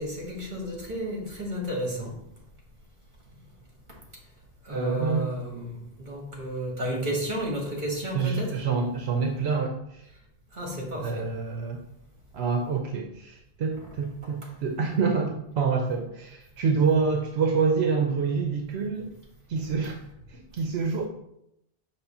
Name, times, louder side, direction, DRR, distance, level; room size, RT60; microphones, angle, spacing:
voice 1, 0.0-2.1 4.7-8.5 10.6-11.1, equal, 50° right, -2 dB, 2.1 m, -32 dB
voice 2, 4.7-5.3 8.1-10.0 11.0-11.8 12.3-19.1 19.5-20.0 20.3-21.0, right 5 dB, 85° right, 2 dB, 1.0 m, -27 dB
6.1 x 3.2 x 5.8 m, 0.79 s
omnidirectional pair, 1.1 m